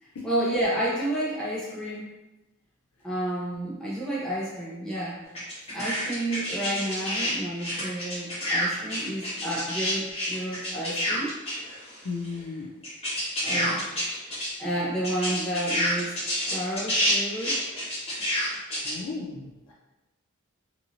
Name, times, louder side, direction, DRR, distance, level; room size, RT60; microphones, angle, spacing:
voice 1, 0.0-2.1 3.0-5.2 5.7-11.3 13.4-14.0 14.3-16.2 16.5-17.6, right 1 dB, 5° left, -8 dB, 0.6 m, -30 dB
sound 1, 5.3-7.3 7.6-12.0 12.2-12.3 12.8-14.5 14.8-14.9 15.0-18.9, equal, 30° left, 1.2 m, -28 dB
voice 2, 12.0-12.7 13.5-13.9 18.8-19.7, left 4 dB, 85° left, -3 dB, 0.5 m, -35 dB
2.9 x 2.5 x 2.7 m, 1.0 s
head